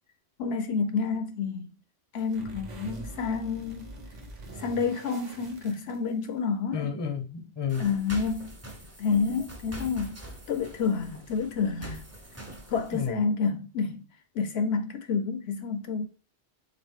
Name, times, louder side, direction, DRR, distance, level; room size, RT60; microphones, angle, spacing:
voice 1, 0.4-1.7 2.1-3.9 4.6-6.9 7.8-8.5 9.0-10.2 10.5-12.0 12.7-14.0 14.4-16.1, left 5 dB, 70° left, 0.8 m, -29 dB
sound 1, 2.2-6.4, right 2 dB, 40° right, 0.9 m, -44 dB
voice 2, 6.7-7.9 12.9-13.3, left 7 dB, 30° left, 0.6 m, -31 dB
sound 2, 7.7-13.1, right 1 dB, 15° right, 0.6 m, -44 dB
3.9 x 3.8 x 3.6 m
omnidirectional pair, 1.2 m